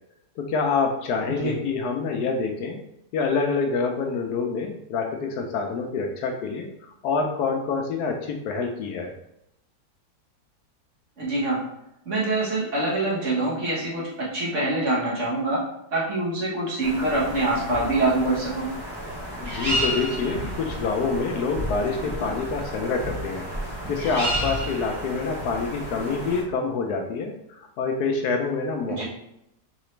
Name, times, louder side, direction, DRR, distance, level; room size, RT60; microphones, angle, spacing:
voice 1, 0.4-2.8 3.1-6.7 7.0-9.1 19.4-23.5 23.9-29.0, left 4 dB, 75° left, 3 dB, 1.0 m, -26 dB
voice 2, 11.2-11.6 12.0-14.0 14.3-15.6 15.9-18.7 28.9-29.0, right 2 dB, 45° right, -5 dB, 1.5 m, -25 dB
sound 1, 16.8-26.4, equal, 20° right, 0.7 m, -31 dB
3.9 x 3.8 x 3.2 m, 0.81 s
omnidirectional pair, 1.8 m